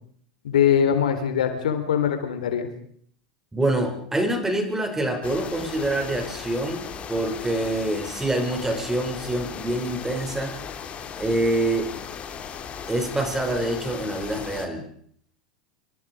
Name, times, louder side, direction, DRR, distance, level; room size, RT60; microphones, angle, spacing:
voice 1, 0.4-2.7, left 8 dB, 75° left, 8 dB, 4.0 m, -22 dB
voice 2, 3.5-10.6 11.2-11.9 12.9-14.8, right 1 dB, 10° right, 4 dB, 6.6 m, -26 dB
sound 1, 5.2-14.7, left 7 dB, 30° left, 3.5 m, -37 dB
26.0 x 25.5 x 5.1 m, 0.62 s
hypercardioid pair, 90°, 4 cm